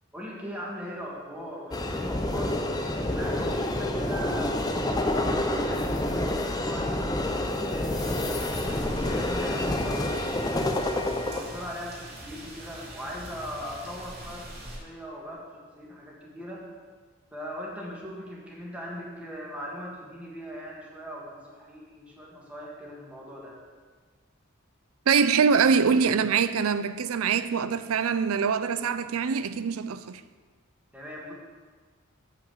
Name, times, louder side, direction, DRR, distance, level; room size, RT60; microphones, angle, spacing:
voice 1, 0.1-2.7 2.9-10.7 11.2-14.5 14.8-15.5 15.8-16.7 17.3-23.6 30.9-31.3, equal, 5° right, 1.5 m, -40 dB
sound 1, 1.7-11.4, left 1 dB, 20° left, 0.6 m, -28 dB
sound 2, 7.9-14.8, right 1 dB, 45° right, 2.7 m, -42 dB
voice 2, 25.1-30.2, right 6 dB, 80° right, 0.5 m, -24 dB
7.3 x 5.8 x 7.1 m
head